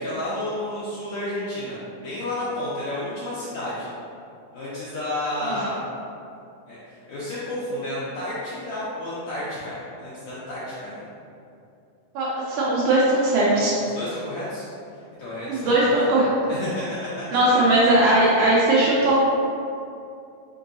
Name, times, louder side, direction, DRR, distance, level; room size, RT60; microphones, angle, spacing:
voice 1, 0.0-3.9 4.5-5.8 6.7-11.0 13.8-14.7 15.2-15.9 16.5-16.8 17.5-17.6, left 1 dB, 75° left, -10 dB, 1.7 m, -31 dB
voice 2, 12.2-13.7 15.5-16.3 17.3-19.2, right 1 dB, 80° right, -6 dB, 1.9 m, -19 dB
5.3 x 3.7 x 2.6 m, 2.5 s
omnidirectional pair, 4.1 m